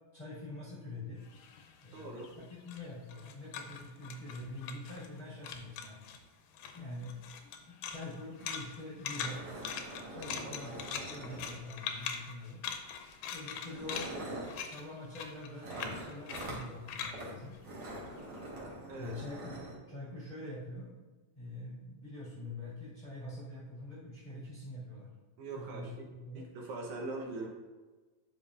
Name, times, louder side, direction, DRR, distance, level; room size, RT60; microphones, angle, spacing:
voice 1, 0.1-1.2 1.8-6.0 6.7-7.1 7.6-9.5 10.1-12.6 13.3-14.1 14.6-17.6 19.0-19.6 19.9-20.9 21.3-25.1 25.5-26.5, left 1 dB, 35° left, -9 dB, 1.5 m, -45 dB
sound 1, 1.2-5.2 5.4-6.2 6.5-18.4, left 7 dB, 85° left, 2.3 m, -43 dB
voice 2, 1.9-2.3 10.3-10.6 18.9-19.1 25.4-26.1 26.3-27.5, right 2 dB, 70° right, 0 dB, 2.1 m, -42 dB
sound 2, 8.4-8.5 8.7-8.8 9.1-11.9 12.9-13.1 13.6-14.6 15.6-16.6 17.1-17.3 17.6-19.7, right 1 dB, 50° right, 2.2 m, -44 dB
10.5 x 5.5 x 2.4 m, 1.3 s
omnidirectional pair, 3.8 m